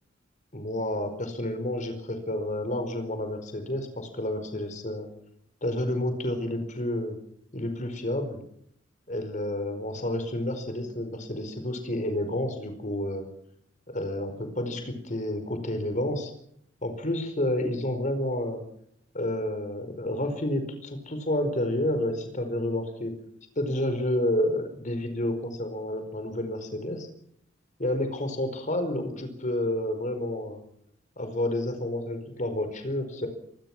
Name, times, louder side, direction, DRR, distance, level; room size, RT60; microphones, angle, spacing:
voice 1, 0.5-5.1 5.6-7.2 7.5-8.4 9.1-13.3 13.9-16.3 16.8-18.6 19.1-23.1 23.5-27.1 27.8-30.6 31.2-33.3, left 1 dB, 40° left, 8 dB, 4.8 m, -30 dB
26.0 x 20.0 x 6.1 m, 0.70 s
head